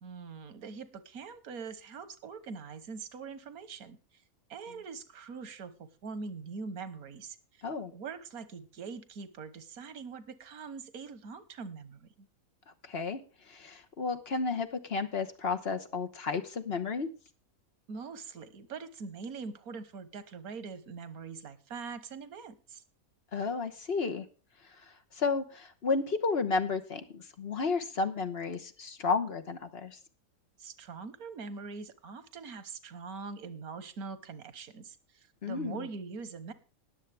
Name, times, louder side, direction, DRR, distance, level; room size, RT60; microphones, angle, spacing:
voice 1, 0.0-4.0 4.5-7.6 7.9-12.3 17.9-22.8 30.6-36.5, right 5 dB, 90° right, 14 dB, 1.5 m, -43 dB
voice 2, 12.8-13.2 13.5-17.1 23.3-24.2 25.1-30.0 35.4-35.8, left 4 dB, 50° left, 7 dB, 1.2 m, -32 dB
20.0 x 7.3 x 3.4 m, 0.36 s
omnidirectional pair, 1.5 m